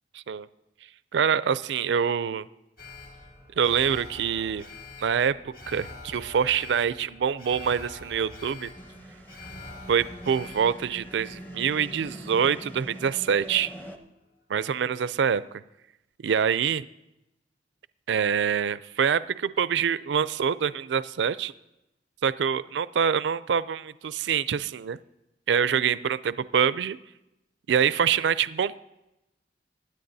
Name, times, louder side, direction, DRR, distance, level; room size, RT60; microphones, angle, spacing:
voice 1, 0.1-0.5 1.1-2.5 3.6-4.6 5.0-8.7 9.9-13.7 14.5-15.4 16.2-16.9 18.1-21.5 22.2-25.0 25.5-27.0 27.7-28.8, right 7 dB, 75° right, 16 dB, 0.4 m, -25 dB
Alarm, 2.8-13.0 13.4-13.5, left 2 dB, 55° left, 1.5 m, -45 dB
sound 1, 8.8-14.0, right 1 dB, 10° left, 0.7 m, -43 dB
21.5 x 9.5 x 2.7 m, 0.92 s
head